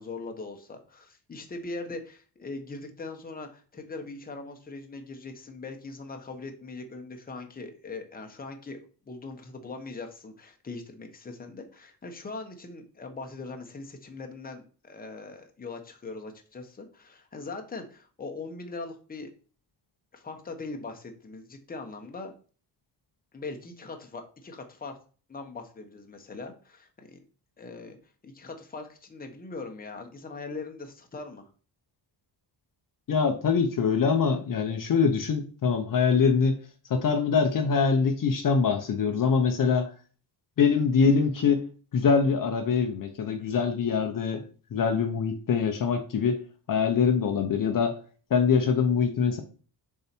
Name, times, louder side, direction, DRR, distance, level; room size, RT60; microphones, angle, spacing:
voice 1, 0.0-19.3 20.1-22.3 23.3-25.0 25.3-27.2 27.6-28.0 28.2-31.5, left 3 dB, 20° left, 4 dB, 1.1 m, -41 dB
voice 2, 33.1-36.6 36.9-39.9 40.6-41.7 41.9-44.4 44.7-46.4 46.7-48.0 48.3-49.4, left 5 dB, 45° left, 5 dB, 0.9 m, -24 dB
7.0 x 4.8 x 4.5 m, 0.38 s
wide cardioid pair, 175°, 45 cm